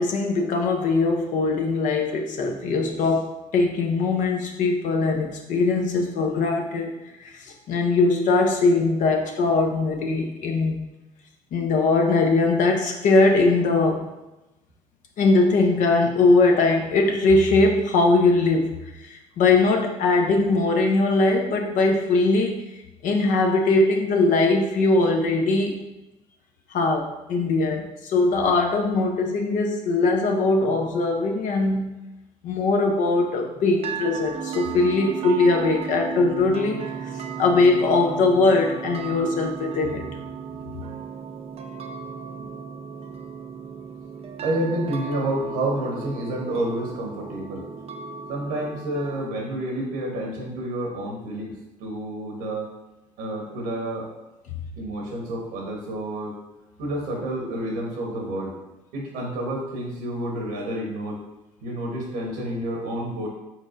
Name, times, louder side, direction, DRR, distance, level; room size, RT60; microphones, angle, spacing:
voice 1, 0.0-6.9 7.2-10.8 11.5-14.1 15.2-22.6 23.0-25.8 26.7-31.9 32.4-36.8 37.4-40.1, left 3 dB, 65° left, 2 dB, 0.8 m, -21 dB
sound 1, 33.8-49.3, right 7 dB, 45° right, 0.5 m, -35 dB
voice 2, 44.4-47.7 48.3-52.7 53.2-54.1 54.8-56.4 56.8-58.6 58.9-61.2 61.6-63.3, right 1 dB, 90° right, -1 dB, 1.1 m, -29 dB
4.6 x 3.9 x 2.5 m, 0.99 s
supercardioid pair, 75°, 14 cm